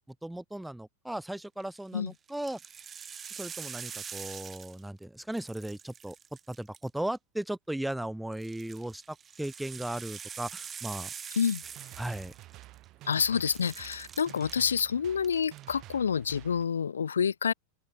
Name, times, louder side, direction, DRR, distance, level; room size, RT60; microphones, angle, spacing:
voice 1, 0.2-2.6 3.3-6.2 6.5-11.1 12.0-12.3, right 1 dB, 5° right, 0.5 m, -37 dB
sound 1, 1.4-1.8 2.3-5.0 5.3-7.2 8.3-12.8 13.1-14.8 15.2-15.6, right 7 dB, 20° right, 1.4 m, -44 dB
sound 2, 11.6-16.6, right 17 dB, 35° right, 5.2 m, -50 dB
voice 2, 13.0-17.5, left 7 dB, 70° left, 0.6 m, -28 dB
open air
figure-of-eight pair, 90°, 0 cm